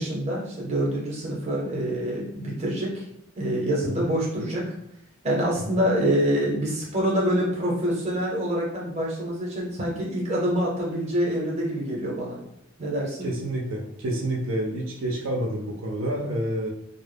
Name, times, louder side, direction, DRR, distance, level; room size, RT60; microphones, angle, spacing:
voice 1, 0.0-3.0 3.4-4.7 5.2-12.4 12.8-13.3, equal, 30° right, -3 dB, 0.7 m, -26 dB
voice 2, 13.2-16.7, right 1 dB, 70° right, -2 dB, 0.4 m, -28 dB
2.1 x 2.0 x 3.3 m, 0.76 s
head